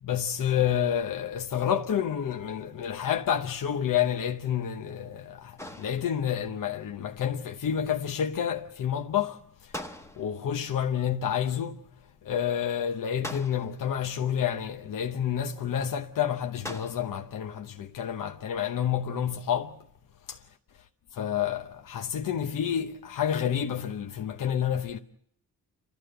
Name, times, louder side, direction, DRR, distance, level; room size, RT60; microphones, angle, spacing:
voice 1, 0.0-11.8 12.2-19.8 20.3-20.4 21.1-25.0, left 9 dB, 60° left, 0.9 m, -29 dB
sound 1, 5.6-6.5 9.7-10.5 13.2-14.0 16.6-17.3, left 1 dB, 10° left, 1.0 m, -41 dB
30.0 x 12.5 x 7.9 m
cardioid pair, 125°, 36 cm